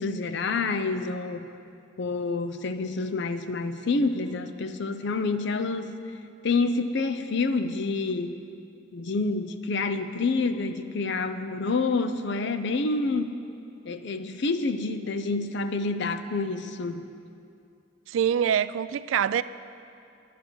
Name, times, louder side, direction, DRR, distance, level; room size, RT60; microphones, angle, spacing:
voice 1, 0.0-1.5 2.0-6.0 6.4-8.4 8.9-13.4 13.9-17.1, left 3 dB, 65° left, 0.6 m, -28 dB
voice 2, 18.1-19.4, right 8 dB, 85° right, 0.3 m, -24 dB
11.0 x 9.4 x 6.2 m
head